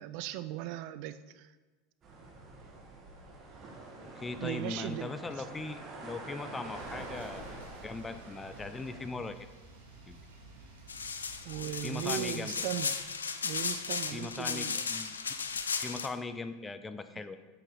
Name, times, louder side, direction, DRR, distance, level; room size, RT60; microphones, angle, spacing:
voice 1, 0.0-1.5 4.4-5.1 11.4-12.9 13.4-14.8, right 13 dB, 55° right, 13 dB, 0.3 m, -38 dB
sound 1, 2.0-9.1, right 2 dB, 35° right, 1.8 m, -46 dB
voice 2, 4.2-7.5 7.8-9.4 10.1-10.2 11.8-12.5 14.1-15.1 15.8-17.4, left 3 dB, 15° left, 10 dB, 0.5 m, -39 dB
sound 2, 6.7-12.3, right 2 dB, 80° right, 1.8 m, -52 dB
sound 3, 10.9-16.1, left 5 dB, 80° left, 0.4 m, -35 dB
8.0 x 6.6 x 3.8 m, 1.2 s
figure-of-eight pair, 80°, 0 cm